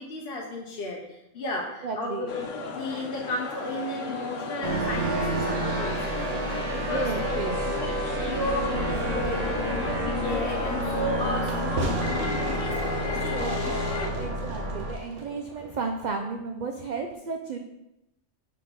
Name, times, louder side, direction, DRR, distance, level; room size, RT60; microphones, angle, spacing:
voice 1, 0.0-7.3 7.7-7.9 8.2-13.7 14.0-14.3, left 2 dB, 55° left, -2 dB, 1.0 m, -34 dB
voice 2, 1.8-2.3 6.7-7.8 13.3-13.6 14.1-17.6, right 4 dB, 55° right, 4 dB, 0.5 m, -33 dB
sound 1, 2.3-14.1, left 3 dB, 85° left, 1.2 m, -34 dB
sound 2, 4.6-14.9, right 1 dB, 35° right, 1.0 m, -30 dB
Fireworks, 10.8-16.0, right 3 dB, 75° right, 1.3 m, -37 dB
5.2 x 4.4 x 5.6 m, 0.89 s
omnidirectional pair, 1.3 m